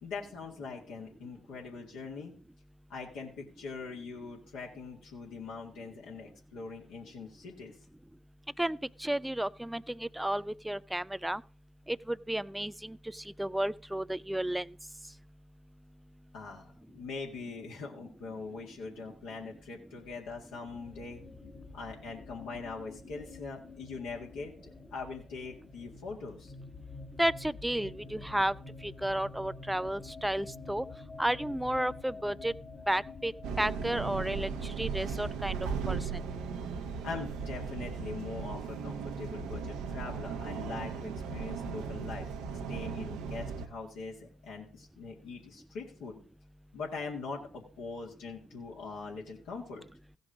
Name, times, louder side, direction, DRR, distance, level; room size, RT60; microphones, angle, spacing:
voice 1, 0.0-2.3 2.9-7.8 16.3-21.2 21.7-24.5 24.9-26.5 37.0-46.2 46.7-49.8, left 4 dB, 80° left, 2.0 m, -42 dB
voice 2, 8.6-11.4 11.9-14.7 27.2-28.5 28.8-30.8 31.2-32.5 32.9-33.3 33.6-35.5 35.9-36.0, right 1 dB, 10° right, 0.4 m, -32 dB
sound 1, 20.6-36.5, left 3 dB, 30° left, 1.6 m, -48 dB
sound 2, 33.4-43.7, right 6 dB, 80° right, 0.9 m, -37 dB
15.5 x 5.3 x 5.0 m
hypercardioid pair, 50°, 0 cm